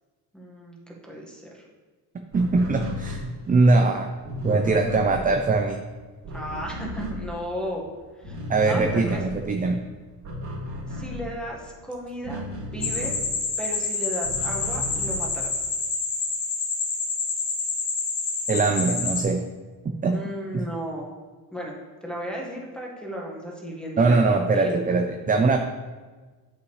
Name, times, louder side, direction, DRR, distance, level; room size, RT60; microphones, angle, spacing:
voice 1, 0.3-1.6 6.3-7.8 8.2-8.4 8.6-9.2 10.9-12.4 12.7-13.2 13.6-15.6 20.1-21.1 21.5-21.7 22.0-24.2 24.5-24.8, equal, ahead, -2 dB, 1.6 m, -34 dB
voice 2, 2.3-4.1 4.4-5.8 8.5-9.8 18.5-19.4 20.0-20.2 20.5-20.6 24.0-25.6, right 3 dB, 25° right, 4 dB, 0.5 m, -21 dB
sound 1, 2.3-7.9 8.2-13.6 14.0-15.8, left 1 dB, 50° right, 2.3 m, -35 dB
sound 2, 12.8-19.2, left 4 dB, 55° left, 1.4 m, -28 dB
7.6 x 5.7 x 3.3 m, 1.3 s
cardioid pair, 95°, 37 cm